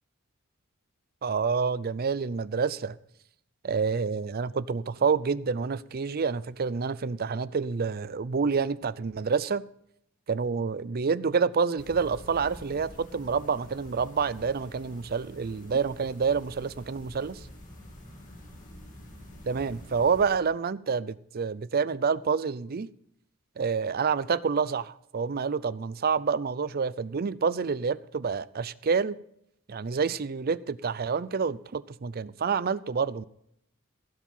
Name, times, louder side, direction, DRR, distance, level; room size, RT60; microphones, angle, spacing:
voice 1, 1.2-3.0 3.6-9.6 10.3-17.4 19.5-22.9 23.6-29.2 29.7-33.2, right 5 dB, 50° right, 0.5 m, -28 dB
sound 1, 11.8-20.4, left 1 dB, 40° left, 2.6 m, -47 dB
16.5 x 7.4 x 5.4 m
head